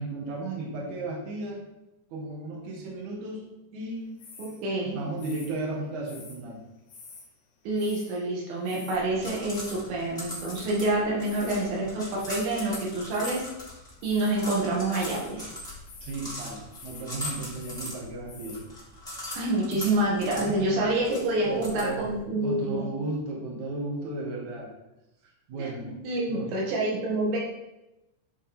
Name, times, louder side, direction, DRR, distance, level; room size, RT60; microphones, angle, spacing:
voice 1, 0.0-1.6 2.1-3.4 3.7-4.1 4.9-6.6 16.0-18.6 19.7-19.8 20.4-20.9 21.4-22.1 22.4-24.7 25.5-25.9 26.3-26.5, right 2 dB, 50° right, -3 dB, 2.7 m, -34 dB
sound 1, 4.2-4.6 5.2-6.4 6.9-7.3 7.7-8.2 8.5-9.0 9.5-9.8 10.3-10.8 11.1-11.7 12.2-12.6 13.1-13.5 14.0-14.4 14.9-15.4 15.9-16.3 16.7-17.1 17.4-17.9 18.3-18.6, left 4 dB, 50° left, 2.6 m, -47 dB
voice 2, 4.4-5.0 7.7-13.4 14.0-15.5 19.3-22.9 25.6-27.4, right 2 dB, 80° right, -4 dB, 4.4 m, -27 dB
sound 2, 8.9-22.2, left 1 dB, ahead, 2.2 m, -41 dB
10.5 x 5.3 x 4.4 m, 0.95 s
omnidirectional pair, 5.3 m